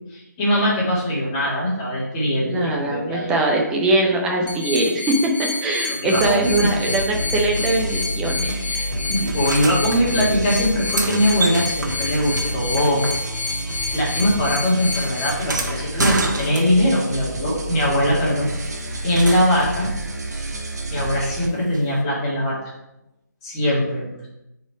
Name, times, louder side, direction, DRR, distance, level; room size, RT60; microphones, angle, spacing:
voice 1, 0.1-3.4 5.8-6.7 8.5-13.1 13.6-13.7 13.9-18.7 19.0-19.9 20.3-20.5 20.9-22.6 23.4-24.3, equal, 20° left, -6 dB, 2.2 m, -21 dB
voice 2, 2.3-8.6, right 2 dB, 5° right, 0 dB, 0.6 m, -22 dB
sound 1, 4.5-15.3, left 4 dB, 35° left, 0.9 m, -29 dB
sound 2, 6.1-21.5, right 1 dB, 60° right, 1.4 m, -29 dB
sound 3, 9.3-10.0 10.6-13.6 13.9-17.0 18.5-19.8 21.7-21.8, right 2 dB, 80° right, 1.6 m, -29 dB
7.5 x 4.5 x 4.7 m, 0.90 s
hypercardioid pair, 165°, 10 cm